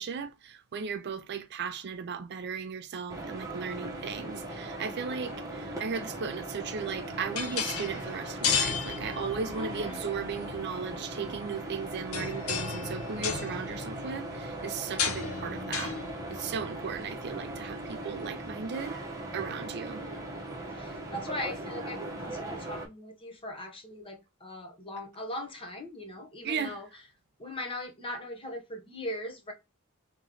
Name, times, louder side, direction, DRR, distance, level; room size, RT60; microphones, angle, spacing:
voice 1, 0.0-16.0 16.3-19.0 19.3-20.0 26.4-26.8, right 6 dB, 50° right, 0.4 m, -36 dB
sound 1, 3.1-22.9, right 1 dB, 15° right, 1.0 m, -39 dB
sound 2, 6.8-18.2, left 6 dB, 75° left, 0.7 m, -35 dB
voice 2, 9.6-10.2 19.9-20.3 20.7-26.9 27.4-29.5, left 1 dB, 25° left, 0.9 m, -40 dB
3.0 x 3.0 x 3.7 m
head